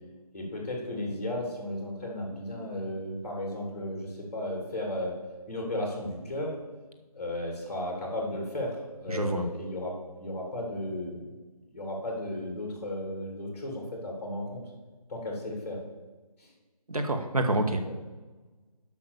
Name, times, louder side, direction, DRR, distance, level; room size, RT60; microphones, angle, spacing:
voice 1, 0.3-5.2 5.5-6.5 7.1-9.9 10.2-11.2 11.7-14.6 15.1-15.8 16.4-16.5 17.6-18.0, left 1 dB, 25° left, -1 dB, 2.8 m, -34 dB
voice 2, 9.1-9.4 16.9-17.8, right 1 dB, 65° right, 5 dB, 1.5 m, -27 dB
8.5 x 5.8 x 6.8 m, 1.3 s
figure-of-eight pair, 165°, 20 cm